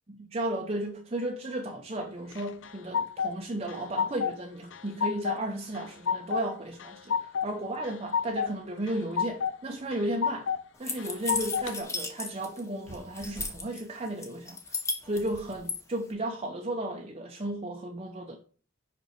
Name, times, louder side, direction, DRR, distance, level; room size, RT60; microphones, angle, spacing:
voice 1, 0.1-10.5 10.8-18.4, right 1 dB, 30° right, 0.6 m, -34 dB
sound 1, 2.3-3.3 3.7-4.4 4.7-5.4 5.7-6.5 6.8-7.5 7.8-8.5 8.9-9.6 9.9-10.6 11.0-11.7, left 7 dB, 60° left, 0.4 m, -30 dB
sound 2, 10.8-12.6 12.9-13.8 14.2-15.8, left 3 dB, 15° left, 0.8 m, -34 dB
5.4 x 5.3 x 4.4 m
head